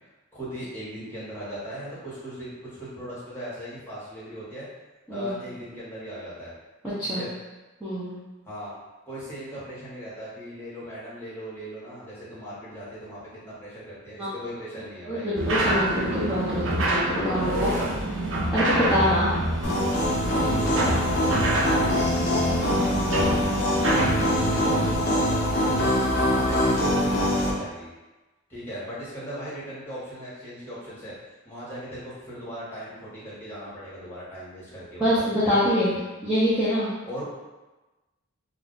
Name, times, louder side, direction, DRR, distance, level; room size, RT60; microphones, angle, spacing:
voice 1, 0.3-4.7 5.1-6.5 7.1-7.3 8.4-8.7 9.1-15.3 17.3-17.9 18.9-19.2 20.3-20.9 21.2-27.9 28.5-31.2 31.4-35.3 37.0-37.3, right 1 dB, 10° left, -10 dB, 1.0 m, -38 dB
voice 2, 7.8-8.1 14.2-14.3 15.1-16.6 16.9-17.7 18.5-19.3 35.0-35.9 36.2-36.9, equal, 5° right, -13 dB, 0.5 m, -24 dB
sound 1, 15.4-24.9, right 1 dB, 60° right, 0.5 m, -27 dB
sound 2, 19.6-27.5, left 1 dB, 50° left, 0.5 m, -23 dB
2.4 x 2.1 x 3.7 m, 1.1 s
head